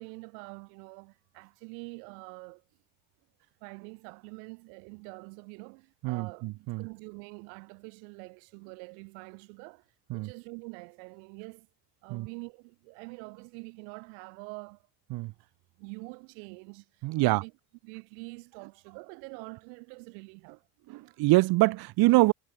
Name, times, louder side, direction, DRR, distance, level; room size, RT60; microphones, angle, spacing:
voice 1, 0.0-2.6 3.6-6.5 6.8-9.8 10.1-11.7 12.0-14.8 15.8-16.9 17.2-17.5 17.8-20.6, right 40 dB or more, 80° right, 2.2 m, -45 dB
voice 2, 6.0-6.8 10.1-10.3 12.1-12.3 15.1-15.3 17.0-17.4 20.9-22.3, right 20 dB, 50° right, 0.5 m, -25 dB
hypercardioid pair, 70°, 50 cm